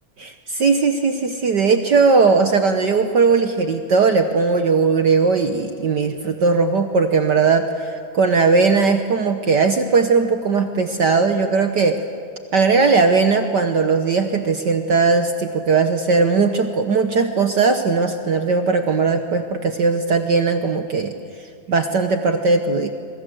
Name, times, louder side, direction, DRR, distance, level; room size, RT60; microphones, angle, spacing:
voice 1, 0.2-7.7 8.1-12.0 12.5-21.1 21.7-22.9, right 4 dB, 60° right, 7 dB, 1.1 m, -18 dB
26.5 x 23.0 x 8.1 m, 2.3 s
omnidirectional pair, 3.3 m